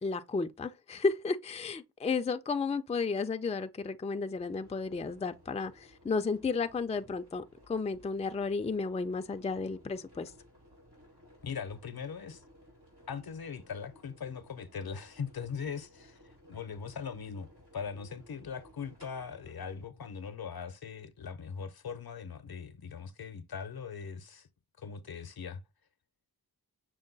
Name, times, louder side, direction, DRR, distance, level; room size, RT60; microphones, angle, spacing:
voice 1, 0.0-7.4 7.7-10.3, left 4 dB, 20° left, 0.3 m, -33 dB
sound 1, 4.4-19.9, equal, 85° right, 3.0 m, -59 dB
voice 2, 11.4-12.4 13.1-16.2 16.5-17.5 17.7-24.5 24.8-25.6, left 6 dB, 65° left, 0.7 m, -40 dB
6.3 x 2.2 x 3.8 m
wide cardioid pair, 70°, 39 cm